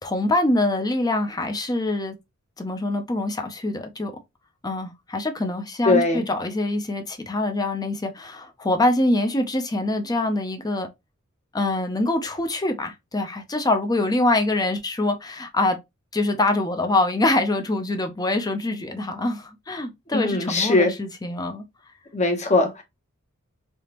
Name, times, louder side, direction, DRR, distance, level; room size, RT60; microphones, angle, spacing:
voice 1, 0.0-2.2 2.6-4.1 4.6-10.9 11.5-15.8 16.1-21.6, left 2 dB, 20° left, 0.5 m, -24 dB
voice 2, 5.8-6.2 20.1-20.9 22.1-22.8, left 2 dB, 35° left, 0.9 m, -20 dB
3.4 x 2.9 x 2.9 m
head